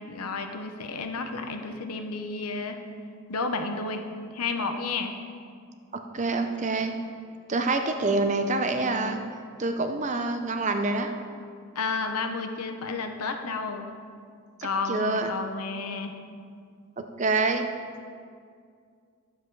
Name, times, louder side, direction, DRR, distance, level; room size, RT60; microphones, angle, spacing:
voice 1, 0.1-2.8 3.3-4.1 4.3-5.1 11.7-13.9 14.6-16.1, left 4 dB, 85° left, 6 dB, 0.8 m, -31 dB
voice 2, 5.9-6.9 7.5-9.2 9.6-11.1 14.9-15.3 17.0-17.7, right 3 dB, 30° right, 6 dB, 0.6 m, -26 dB
11.5 x 7.3 x 4.6 m, 2.2 s
head